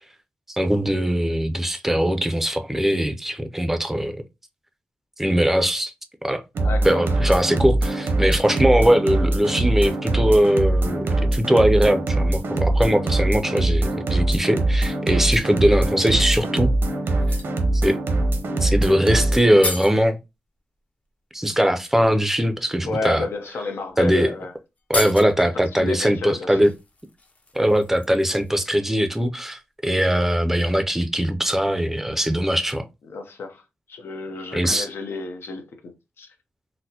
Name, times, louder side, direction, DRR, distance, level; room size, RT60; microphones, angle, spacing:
voice 1, 0.5-4.2 5.2-5.9 6.2-6.4 6.8-16.7 17.7-18.0 18.6-20.2 21.3-23.2 24.0-24.3 24.9-26.7 27.5-32.8 34.5-34.9, equal, 10° right, 0.4 m, -21 dB
sound 1, 6.5-19.4, right 2 dB, 85° right, 0.7 m, -22 dB
voice 2, 6.6-7.2 22.9-24.5 25.4-26.6 33.0-33.6 33.9-36.3, left 3 dB, 85° left, 0.7 m, -31 dB
sound 2, 17.1-17.6 19.1-19.2 19.4-20.0 21.4-21.5 22.2-22.4 23.3-23.4 23.7-23.9 24.1-24.2 24.8-25.5 26.6-28.7 28.9-29.1, left 3 dB, 35° left, 0.6 m, -33 dB
4.1 x 2.0 x 2.7 m
wide cardioid pair, 110°, 4 cm